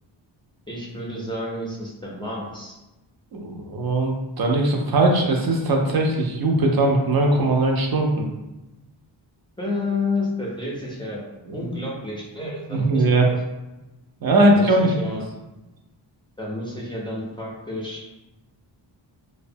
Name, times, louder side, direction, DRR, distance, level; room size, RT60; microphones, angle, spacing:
voice 1, 0.7-2.8 9.6-11.2 11.5-13.3 14.4-15.2 16.4-18.0, left 2 dB, 10° left, -5 dB, 0.4 m, -30 dB
voice 2, 3.3-8.3 11.5-11.7 12.4-13.3 14.2-15.2, right 2 dB, 55° right, 1 dB, 0.5 m, -20 dB
2.6 x 2.1 x 2.6 m, 1.0 s
wide cardioid pair, 125°, 44 cm